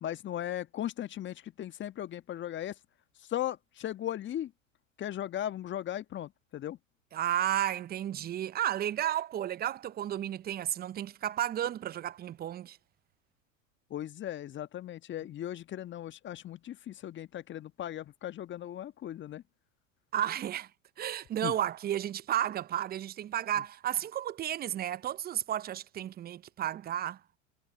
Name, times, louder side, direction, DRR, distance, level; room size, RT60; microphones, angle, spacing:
voice 1, 0.0-2.7 3.3-4.5 5.0-6.8 13.9-19.4 21.4-21.5, left 11 dB, 30° left, 1.5 m, -37 dB
voice 2, 7.1-12.8 20.1-20.7 21.0-27.2, right 11 dB, 25° right, 0.8 m, -32 dB
figure-of-eight pair, 90°, 40 cm